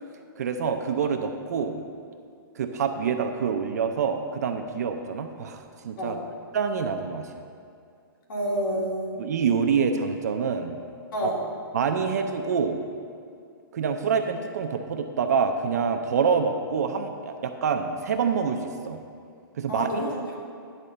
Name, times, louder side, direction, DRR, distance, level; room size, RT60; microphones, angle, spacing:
voice 1, 0.4-1.8 2.6-6.2 6.5-7.4 9.2-10.8 11.2-11.3 11.7-12.8 13.7-19.0 19.6-20.0, right 6 dB, 45° right, 5 dB, 0.5 m, -26 dB
voice 2, 8.3-9.1 11.1-11.4 19.7-20.4, equal, 60° left, -3 dB, 2.2 m, -29 dB
10.0 x 4.0 x 6.6 m, 2.3 s
hypercardioid pair, 175°, 12 cm